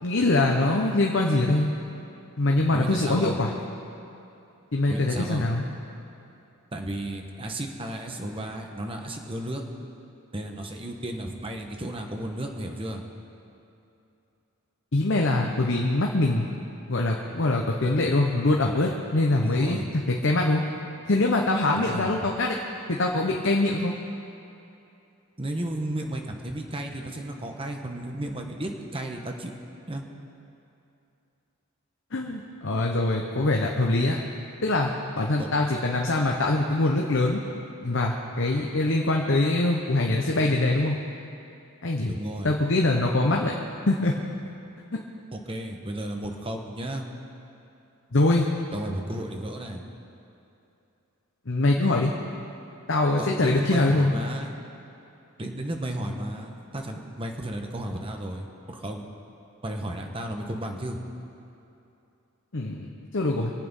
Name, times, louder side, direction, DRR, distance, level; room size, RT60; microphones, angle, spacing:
voice 1, 0.0-1.7 2.4-3.5 4.7-5.6 14.9-16.5 16.9-20.6 21.1-22.6 22.9-24.0 32.1-34.2 34.6-34.9 35.2-37.4 37.8-41.0 41.8-42.1 42.4-43.5 43.9-44.1 44.9-45.0 48.1-48.5 51.5-52.1 52.9-54.1 62.5-63.5, left 2 dB, 55° left, 0 dB, 1.0 m, -23 dB
voice 2, 2.7-3.4 4.9-5.5 6.7-9.6 10.3-13.0 19.4-19.9 21.7-22.1 25.4-29.5 29.9-30.0 35.4-35.5 42.1-42.5 45.3-47.1 48.7-49.8 53.2-54.6 55.4-59.1 59.6-61.0, right 1 dB, 25° right, 2 dB, 1.1 m, -33 dB
24.0 x 8.6 x 5.5 m, 2.8 s
head